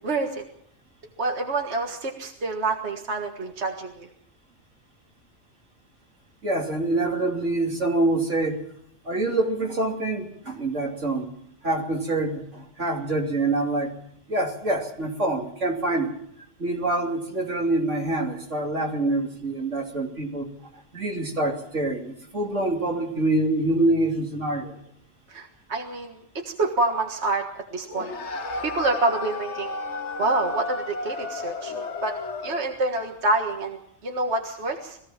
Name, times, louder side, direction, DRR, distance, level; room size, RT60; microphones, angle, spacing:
voice 1, 0.0-0.4 1.2-4.1 25.3-26.2 26.6-27.4 27.7-28.1 28.8-29.7 30.2-31.7 32.0-32.1 32.4-35.0, right 2 dB, 65° right, 3 dB, 2.0 m, -27 dB
voice 2, 6.4-8.6 9.1-11.3 11.6-14.0 14.3-16.1 16.6-20.5 20.9-24.8, right 2 dB, 85° right, 1 dB, 3.3 m, -25 dB
sound 1, 27.9-32.8, left 3 dB, 70° left, 1.4 m, -33 dB
22.0 x 16.5 x 7.4 m, 0.72 s
omnidirectional pair, 1.2 m